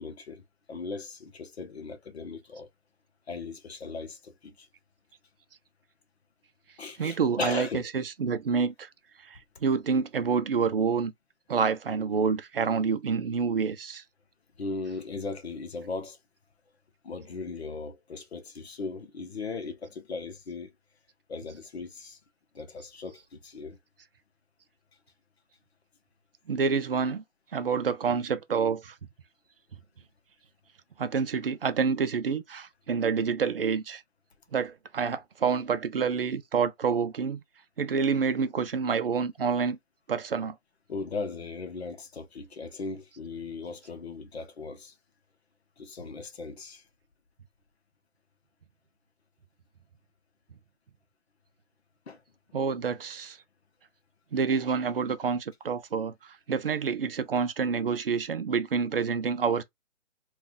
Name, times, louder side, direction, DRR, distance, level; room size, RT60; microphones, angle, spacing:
voice 1, 0.0-2.7 3.3-4.7 6.8-7.9 14.6-16.2 17.0-20.7 21.3-22.2 22.5-23.8 40.9-45.0 45.8-46.8 52.1-52.2, left 4 dB, 55° left, 0.9 m, -38 dB
voice 2, 7.0-8.9 9.2-11.1 11.5-14.0 26.5-27.2 27.5-29.0 31.0-34.0 34.5-37.4 37.8-39.8 40.1-40.6 52.5-53.4 54.3-59.6, right 5 dB, 50° right, 0.5 m, -28 dB
3.7 x 2.4 x 2.6 m
hypercardioid pair, 170°, 38 cm